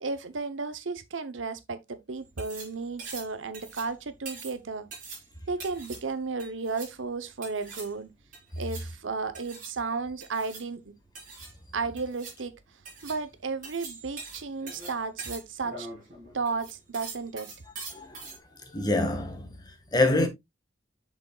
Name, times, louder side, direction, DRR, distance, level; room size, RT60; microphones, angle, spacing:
voice 1, 0.0-4.9 5.5-8.1 8.6-10.9 11.7-12.5 13.0-15.9 16.3-17.5, right 4 dB, 80° right, 0.9 m, -33 dB
sound 1, 2.2-18.4, right 4 dB, 45° right, 4.3 m, -44 dB
voice 2, 18.7-20.3, left 2 dB, 20° left, 1.5 m, -26 dB
7.8 x 6.2 x 2.3 m
head